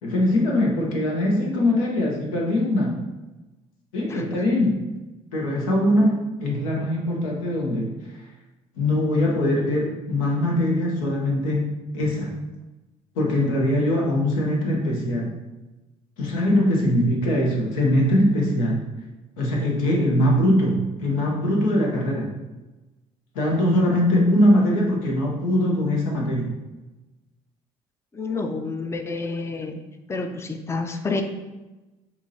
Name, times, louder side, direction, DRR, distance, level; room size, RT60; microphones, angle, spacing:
voice 1, 0.0-3.0 3.9-4.8 5.3-8.0 8.8-11.7 11.9-12.4 13.1-15.3 16.2-18.8 19.4-22.3 23.3-26.5, left 1 dB, 85° left, -1 dB, 0.8 m, -22 dB
voice 2, 28.1-29.8 30.1-31.2, left 3 dB, 15° left, 6 dB, 0.4 m, -29 dB
4.6 x 2.7 x 2.7 m, 1.1 s
hypercardioid pair, 55°, 17 cm